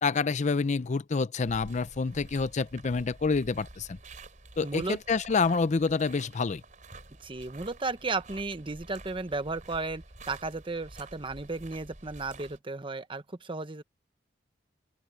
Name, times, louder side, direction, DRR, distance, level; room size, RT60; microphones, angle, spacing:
voice 1, 0.0-4.0 4.6-6.6, left 4 dB, 40° left, 0.5 m, -27 dB
sound 1, 1.4-12.6, right 2 dB, 45° right, 3.9 m, -49 dB
voice 2, 4.6-5.0 7.2-13.8, right 3 dB, 30° right, 1.0 m, -34 dB
open air
head